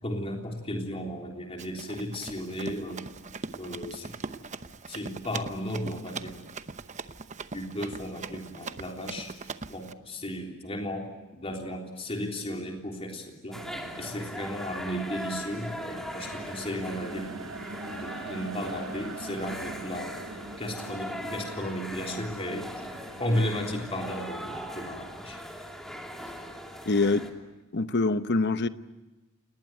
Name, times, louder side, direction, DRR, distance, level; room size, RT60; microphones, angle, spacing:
voice 1, 0.0-3.0 3.6-4.1 4.9-6.4 7.5-9.3 9.7-13.6 14.0-20.2 20.6-22.9 23.2-25.4, equal, 30° left, 3.6 m, -34 dB
Run, 1.6-9.9, right 4 dB, 35° right, 0.9 m, -41 dB
sound 1, 13.5-27.3, equal, ahead, 2.8 m, -40 dB
sound 2, 13.5-23.4, right 3 dB, 70° right, 1.2 m, -44 dB
voice 2, 26.9-27.3 27.7-28.7, left 3 dB, 55° left, 0.9 m, -24 dB
29.5 x 19.5 x 9.3 m
head